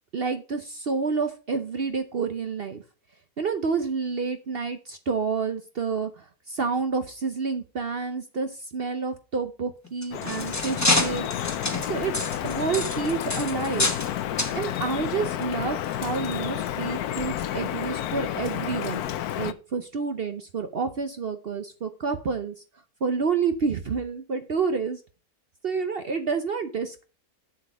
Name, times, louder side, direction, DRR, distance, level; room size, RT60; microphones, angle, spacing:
voice 1, 0.1-2.8 3.4-11.3 11.9-12.1 12.4-13.9 14.5-19.0 19.4-22.5 23.0-25.0 25.6-27.0, right 5 dB, 50° right, 9 dB, 0.8 m, -29 dB
sound 1, 9.8-14.1 14.4-14.6 15.3-15.4 15.9-16.0, left 2 dB, 10° left, 1.1 m, -27 dB
Drip, 10.1-19.5, left 11 dB, 80° left, 1.2 m, -30 dB
7.6 x 7.1 x 5.0 m, 0.34 s
omnidirectional pair, 1.6 m